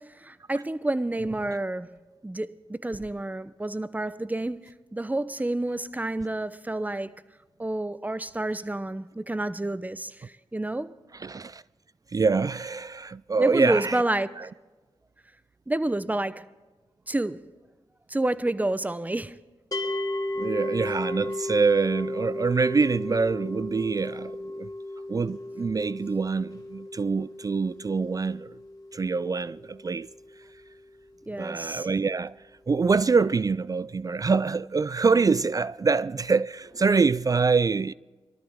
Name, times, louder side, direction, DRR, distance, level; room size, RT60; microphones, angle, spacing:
voice 1, 0.0-1.9 2.2-7.2 7.6-10.9 13.4-14.5 15.7-16.4 17.1-17.4 18.1-19.4 31.3-31.9, right 2 dB, 15° right, 0.7 m, -29 dB
voice 2, 11.2-11.6 12.1-14.0 14.4-14.5 20.4-24.7 25.1-28.6 28.9-30.1 31.4-32.4 32.7-37.9, right 4 dB, 35° right, 0.3 m, -25 dB
sound 1, 19.7-30.9, left 1 dB, 40° left, 2.9 m, -35 dB
22.5 x 13.0 x 3.6 m
cardioid pair, 45°, 10 cm